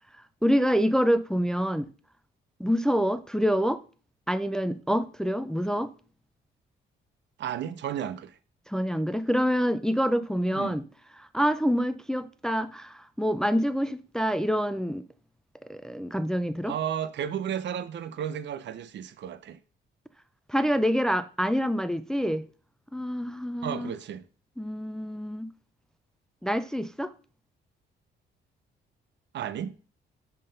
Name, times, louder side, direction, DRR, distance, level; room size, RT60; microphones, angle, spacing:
voice 1, 0.4-1.9 2.6-3.8 4.3-5.9 8.7-10.8 11.2-15.0 15.7-16.7 20.5-22.4 22.9-23.9 24.6-25.5 26.4-27.1, equal, 5° left, 0.4 m, -26 dB
voice 2, 7.4-8.4 10.5-10.8 16.7-19.6 23.6-24.2 29.3-29.8, right 9 dB, 65° right, 0.7 m, -33 dB
7.4 x 3.8 x 5.4 m
cardioid pair, 90°, 20 cm